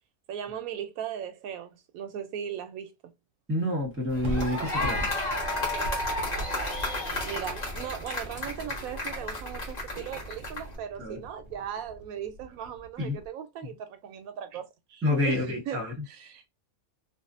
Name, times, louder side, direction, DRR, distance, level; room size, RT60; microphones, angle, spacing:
voice 1, 0.3-3.0 6.8-16.5, right 9 dB, 80° right, 1.0 m, -38 dB
voice 2, 3.5-5.1 11.0-11.2 13.0-13.2 15.0-15.9, left 1 dB, 10° right, 0.9 m, -28 dB
sound 1, 3.8-13.3, right 1 dB, 65° right, 0.5 m, -40 dB
sound 2, 4.1-10.8, left 2 dB, 35° left, 0.9 m, -33 dB
2.6 x 2.3 x 2.4 m
omnidirectional pair, 1.5 m